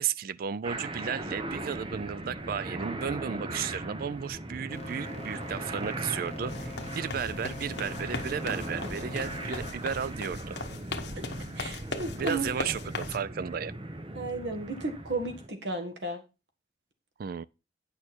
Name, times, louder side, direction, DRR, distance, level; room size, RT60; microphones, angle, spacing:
voice 1, 0.0-10.6 12.2-13.7 17.2-17.4, right 7 dB, 55° right, 0.4 m, -34 dB
sound 1, 0.6-15.5, right 2 dB, 30° right, 0.8 m, -38 dB
sound 2, 4.7-9.7, left 4 dB, 40° left, 1.1 m, -45 dB
sound 3, 6.5-13.2, left 3 dB, 70° left, 1.1 m, -39 dB
voice 2, 11.6-12.5 14.1-16.2, right 2 dB, 80° right, 1.7 m, -34 dB
9.5 x 6.6 x 4.4 m
head